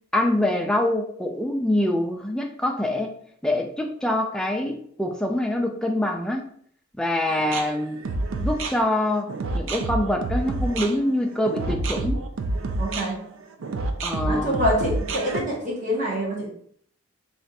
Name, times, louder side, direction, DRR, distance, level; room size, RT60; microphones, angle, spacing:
voice 1, 0.1-3.1 3.4-6.5 7.0-8.0 8.4-12.2 14.0-14.6, left 1 dB, 5° left, 2 dB, 0.3 m, -25 dB
sound 1, 7.3-15.4, right 2 dB, 65° right, 0.4 m, -28 dB
voice 2, 12.8-13.2 14.2-16.5, equal, 35° right, -5 dB, 1.2 m, -26 dB
3.3 x 2.4 x 4.1 m, 0.62 s
head